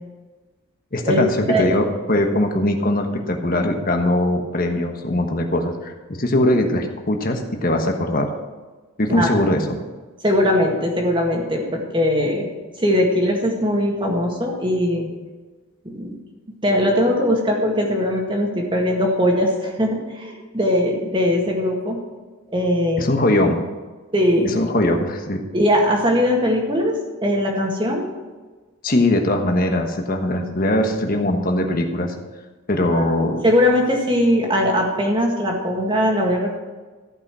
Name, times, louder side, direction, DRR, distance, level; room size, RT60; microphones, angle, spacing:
voice 1, 0.9-5.9 6.2-8.3 9.0-9.8 23.0-23.6 24.5-25.4 28.8-32.1 32.7-33.4, left 1 dB, 40° left, 4 dB, 1.2 m, -21 dB
voice 2, 10.2-12.5 12.8-15.1 15.9-16.2 16.6-22.0 22.5-23.1 24.1-24.5 25.5-26.9 27.2-28.1 32.9-33.1 33.4-36.6, equal, 20° right, 0 dB, 1.9 m, -20 dB
14.5 x 5.8 x 6.2 m, 1.3 s
head